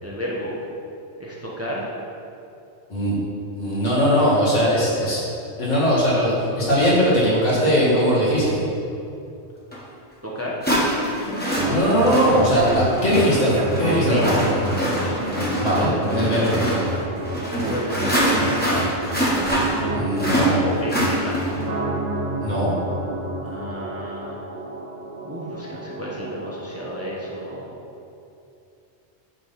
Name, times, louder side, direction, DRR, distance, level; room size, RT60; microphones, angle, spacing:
voice 1, 0.0-0.6 1.2-1.9 4.2-4.3 10.2-10.6 12.5-12.8 13.8-14.4 17.4-19.0 20.6-21.4 23.4-24.5 25.2-27.8, equal, 15° right, -5 dB, 1.0 m, -31 dB
voice 2, 3.5-5.2 5.6-8.6 11.6-14.6 15.6-16.6 19.9-20.6 22.4-22.7, equal, 80° left, -8 dB, 2.3 m, -20 dB
sound 1, 9.7-9.8 10.6-21.7, equal, 10° left, 1.5 m, -25 dB
sound 2, 11.6-27.6, right 1 dB, 75° right, 1.2 m, -30 dB
8.5 x 3.6 x 5.8 m, 2.7 s
omnidirectional pair, 1.2 m